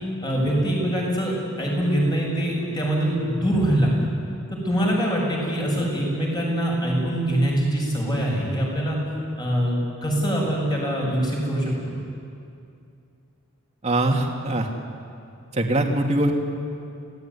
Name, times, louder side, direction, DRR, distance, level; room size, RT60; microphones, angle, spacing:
voice 1, 0.2-3.9 4.6-9.0 9.4-9.7 10.0-12.0, right 1 dB, 20° left, -2 dB, 7.2 m, -23 dB
voice 2, 13.8-14.7 15.5-16.3, right 1 dB, 30° right, 2 dB, 2.4 m, -22 dB
29.0 x 17.5 x 9.8 m, 2.5 s
head